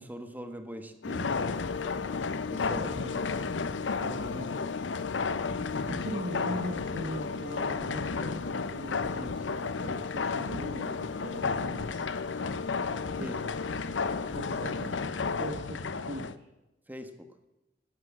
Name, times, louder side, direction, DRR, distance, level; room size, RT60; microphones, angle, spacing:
voice 1, 0.0-1.6 2.5-2.9 13.2-13.4 16.9-17.3, equal, 10° right, 7 dB, 1.5 m, -41 dB
sound 1, 1.0-15.5, left 6 dB, 70° left, 0.4 m, -39 dB
sound 2, 1.1-16.4, left 4 dB, 90° left, 0.8 m, -33 dB
voice 2, 2.7-4.6 5.9-12.1 13.2-13.5 14.3-15.0 15.4-16.5, equal, 65° right, 2 dB, 1.7 m, -41 dB
16.5 x 11.0 x 7.5 m, 0.96 s
head